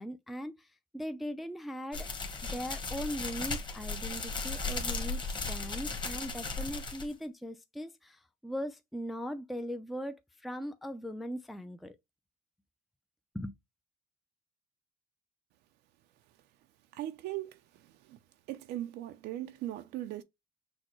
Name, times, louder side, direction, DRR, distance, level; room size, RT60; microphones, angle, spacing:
voice 1, 0.0-2.1 2.5-12.0 13.3-13.6, equal, ahead, 0.4 m, -39 dB
sound 1, 1.9-7.1, left 3 dB, 25° left, 1.3 m, -36 dB
voice 2, 16.9-18.2 18.5-20.2, right 14 dB, 85° right, 0.5 m, -39 dB
6.2 x 2.1 x 3.0 m
cardioid pair, 110°, 17 cm